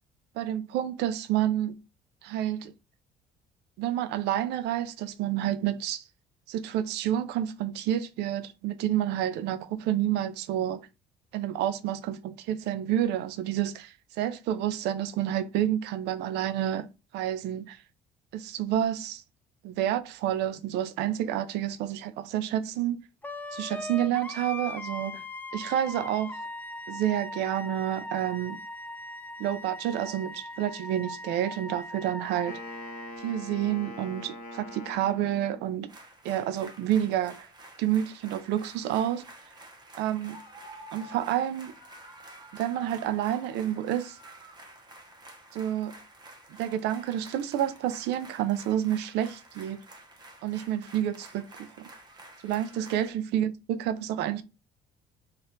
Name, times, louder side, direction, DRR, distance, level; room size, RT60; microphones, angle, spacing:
voice 1, 0.4-1.8 2.2-2.7 3.8-6.0 6.5-10.8 11.3-16.9 17.1-17.8 18.3-19.2 19.6-23.0 23.5-25.2 25.5-26.4 26.9-28.6 29.4-32.6 33.2-35.9 36.2-37.4 37.8-39.2 40.0-40.4 40.9-41.8 42.5-44.2 45.5-46.0 46.5-49.8 50.4-51.9 52.4-54.4, right 11 dB, 80° right, 0.4 m, -29 dB
Wind instrument woodwind instrument, 23.2-33.1, left 1 dB, 10° left, 0.4 m, -40 dB
Wind instrument woodwind instrument 2, 32.5-35.9, left 1 dB, 50° left, 1.0 m, -43 dB
sound 1, 35.9-53.1, right 1 dB, 25° right, 0.8 m, -50 dB
4.3 x 2.5 x 2.5 m
cardioid pair, 110°, 17 cm